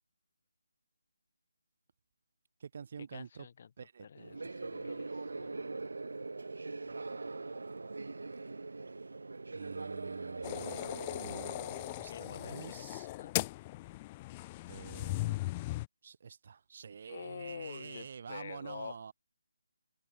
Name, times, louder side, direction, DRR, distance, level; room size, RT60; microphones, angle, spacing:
voice 1, 2.6-3.5 3.8-4.1 6.9-7.2 9.5-10.8 11.1-11.6 12.0-13.1 14.7-15.4 16.0-19.1, right 6 dB, 40° right, 1.8 m, -47 dB
voice 2, 3.1-3.7 4.0-5.7 12.1-13.3 17.1-19.0, left 7 dB, 35° left, 3.4 m, -47 dB
sound 1, 4.1-12.0, right 3 dB, 75° right, 1.9 m, -42 dB
sound 2, 10.4-15.9, left 19 dB, 15° left, 0.8 m, -38 dB
hypercardioid pair, 170°, 0 cm